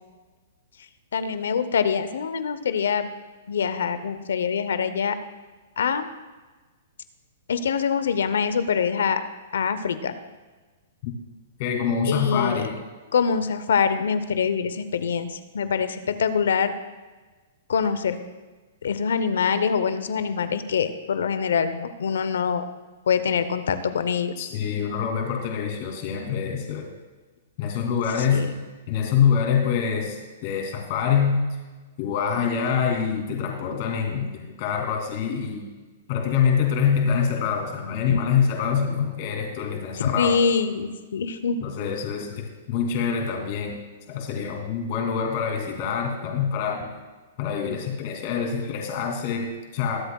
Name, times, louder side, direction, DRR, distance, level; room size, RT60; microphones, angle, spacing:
voice 1, 1.1-3.1 3.5-5.2 5.8-6.1 7.5-9.2 9.5-10.1 12.0-12.7 13.1-16.7 17.7-18.2 18.8-22.7 23.1-24.5 28.3-28.5 38.1-38.2 40.0-41.6, left 6 dB, 80° left, 11 dB, 0.8 m, -24 dB
voice 2, 11.6-12.7 24.4-26.9 27.6-28.4 28.9-31.4 32.0-35.7 36.1-40.4 41.6-43.8 44.1-46.9 47.4-50.0, left 7 dB, 50° left, 1 dB, 2.7 m, -25 dB
22.5 x 7.9 x 2.4 m, 1.3 s
hypercardioid pair, 140°, 0 cm